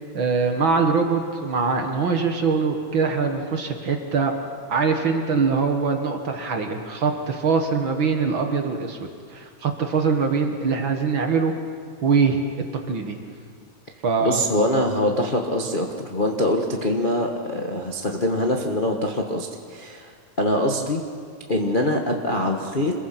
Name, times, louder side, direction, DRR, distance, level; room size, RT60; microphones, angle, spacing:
voice 1, 0.1-4.3 4.7-9.0 9.3-11.5 12.0-12.4 12.9-13.2 14.0-14.4, right 5 dB, 50° right, 4 dB, 1.9 m, -22 dB
voice 2, 14.2-20.1 20.4-21.0 21.5-22.9, left 1 dB, 40° left, 1 dB, 0.7 m, -23 dB
27.0 x 21.5 x 5.9 m, 2.1 s
omnidirectional pair, 3.3 m